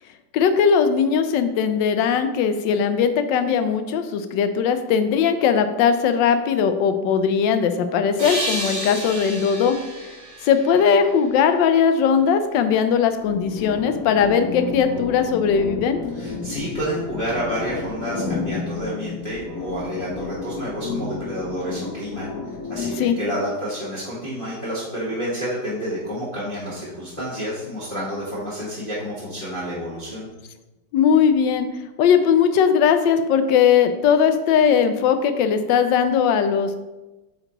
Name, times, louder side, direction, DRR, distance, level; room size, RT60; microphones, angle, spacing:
voice 1, 0.3-9.8 10.4-16.0 23.0-23.2 30.9-31.7 32.0-36.8, left 7 dB, 80° left, 9 dB, 1.3 m, -19 dB
sound 1, 8.2-11.7, right 1 dB, 40° right, 1.9 m, -31 dB
sound 2, 13.2-23.0, left 4 dB, 60° left, 1.2 m, -31 dB
voice 2, 16.1-22.3 22.7-30.3, equal, 30° left, -10 dB, 1.6 m, -29 dB
8.8 x 3.9 x 2.9 m, 1.1 s
omnidirectional pair, 2.0 m